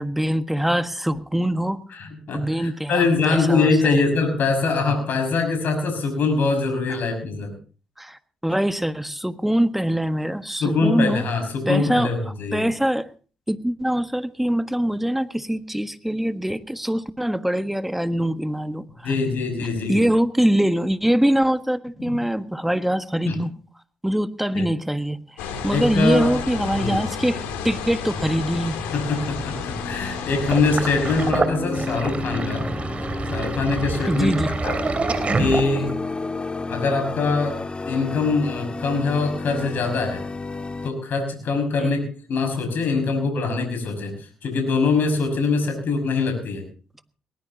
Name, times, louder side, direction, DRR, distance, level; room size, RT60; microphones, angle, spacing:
voice 1, 0.0-1.8 2.3-4.0 6.9-7.0 8.0-11.2 11.7-12.1 12.5-13.1 13.5-19.1 19.8-23.5 24.0-28.8 34.1-34.5 41.8-41.9, equal, 5° right, 10 dB, 1.4 m, -23 dB
voice 2, 1.9-7.5 10.6-12.6 19.0-20.0 23.2-23.4 24.5-24.7 25.7-26.3 26.7-27.0 28.9-32.7 33.3-34.3 34.6-34.8 35.4-35.9 36.7-37.6 37.9-40.2 40.8-46.6, left 4 dB, 60° left, 4 dB, 6.1 m, -23 dB
sound 1, 25.4-31.3, left 6 dB, 80° left, 3.1 m, -32 dB
sound 2, 27.0-40.9, left 3 dB, 30° left, 1.7 m, -32 dB
Sink (filling or washing), 30.5-36.1, right 4 dB, 40° right, 2.8 m, -27 dB
20.5 x 19.5 x 2.9 m, 0.37 s
hypercardioid pair, 45°, 4 cm